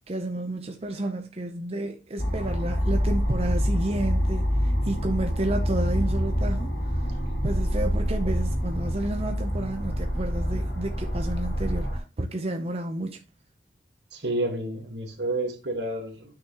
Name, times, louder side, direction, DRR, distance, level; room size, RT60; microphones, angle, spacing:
voice 1, 0.1-7.2 7.4-13.2, right 1 dB, 35° right, 0.8 m, -31 dB
sound 1, 2.2-12.0, equal, 80° left, 4.4 m, -26 dB
voice 2, 14.1-16.3, right 1 dB, 75° right, 1.8 m, -30 dB
9.1 x 6.1 x 3.0 m
head